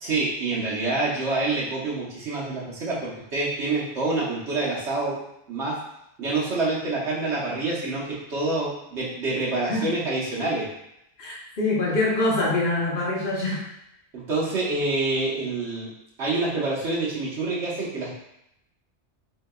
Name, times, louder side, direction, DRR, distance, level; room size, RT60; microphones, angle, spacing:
voice 1, 0.0-5.1 5.5-5.8 6.2-8.0 8.3-10.7 14.1-15.9 16.2-18.1, right 2 dB, 80° right, -6 dB, 1.4 m, -27 dB
voice 2, 11.2-13.6, left 2 dB, 55° left, -4 dB, 1.0 m, -24 dB
3.8 x 3.4 x 2.3 m, 0.81 s
omnidirectional pair, 1.2 m